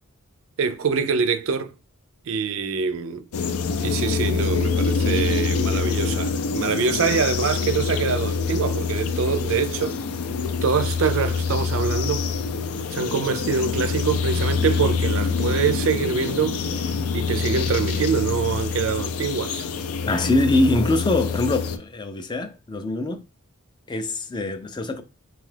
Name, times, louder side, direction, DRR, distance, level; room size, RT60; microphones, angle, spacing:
voice 1, 0.6-1.7 2.3-3.2 3.8-10.0 10.6-12.3 12.9-16.6 17.1-19.7, right 6 dB, 60° right, 0.4 m, -24 dB
sound 1, 3.3-21.8, left 5 dB, 80° left, 0.4 m, -25 dB
voice 2, 20.1-23.2 23.9-25.0, left 2 dB, 20° left, 0.3 m, -23 dB
2.8 x 2.3 x 3.2 m
head